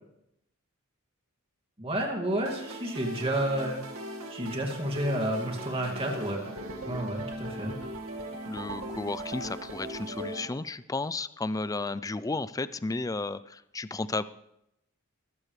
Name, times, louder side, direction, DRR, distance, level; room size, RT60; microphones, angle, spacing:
voice 1, 1.8-3.8 4.3-6.5 6.8-7.8, right 1 dB, 25° right, 1 dB, 2.3 m, -30 dB
sound 1, 2.5-10.5, right 1 dB, 70° right, 2.0 m, -39 dB
voice 2, 8.5-14.2, left 3 dB, 15° left, 15 dB, 0.4 m, -33 dB
21.5 x 14.5 x 3.3 m, 0.83 s
head